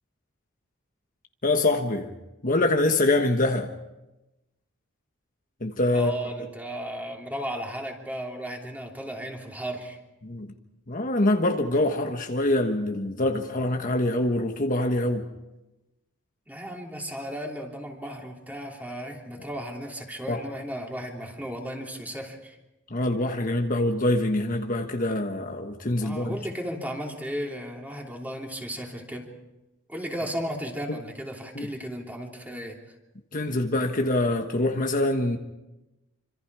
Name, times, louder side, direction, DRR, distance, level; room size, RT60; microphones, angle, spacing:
voice 1, 1.4-2.1 2.4-3.7 5.6-6.1 10.2-10.5 10.9-15.3 20.3-20.4 22.9-26.3 31.5-31.7 33.3-35.4, left 2 dB, 40° left, 3 dB, 1.4 m, -24 dB
voice 2, 5.9-10.0 16.5-22.6 26.0-29.3 29.9-33.0, equal, 10° right, 0 dB, 3.2 m, -35 dB
26.5 x 26.0 x 4.9 m, 0.99 s
head